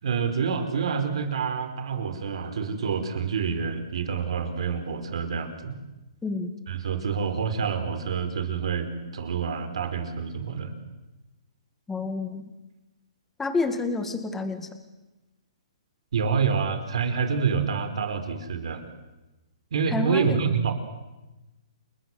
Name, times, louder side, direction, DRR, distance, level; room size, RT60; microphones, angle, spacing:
voice 1, 0.0-5.7 6.7-8.9 9.1-10.7 16.1-18.8 19.7-20.7, right 6 dB, 70° right, 8 dB, 4.8 m, -27 dB
voice 2, 11.9-12.4 13.4-14.7 19.9-20.4, left 3 dB, 10° left, 8 dB, 2.1 m, -28 dB
29.5 x 20.5 x 8.0 m, 1.0 s
hypercardioid pair, 155°, 3 cm